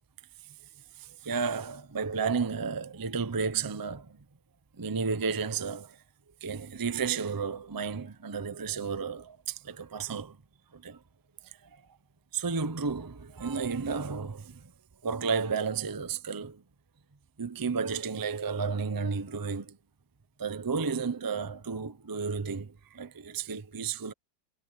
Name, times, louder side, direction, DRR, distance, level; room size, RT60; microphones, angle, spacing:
voice 1, 1.0-4.2 4.8-6.0 6.4-10.4 10.7-11.0 11.4-11.5 12.3-14.6 15.0-16.6 17.4-19.8 20.4-24.1, right 5 dB, 35° right, 0.3 m, -32 dB
omnidirectional pair, 2.0 m